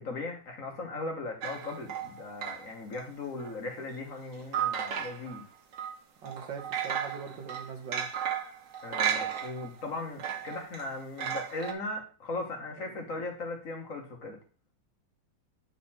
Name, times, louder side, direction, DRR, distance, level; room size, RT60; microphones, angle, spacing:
voice 1, 0.0-5.4 8.8-14.4, left 2 dB, 45° left, 2 dB, 1.6 m, -38 dB
sound 1, 1.4-3.1 3.4-3.5 4.5-5.4 5.7-5.9 6.3-9.9 10.2-11.7, right 8 dB, 50° right, 1.1 m, -34 dB
voice 2, 6.2-8.1, right 6 dB, 70° right, 4 dB, 1.9 m, -41 dB
8.7 x 4.1 x 4.3 m, 0.37 s
omnidirectional pair, 2.1 m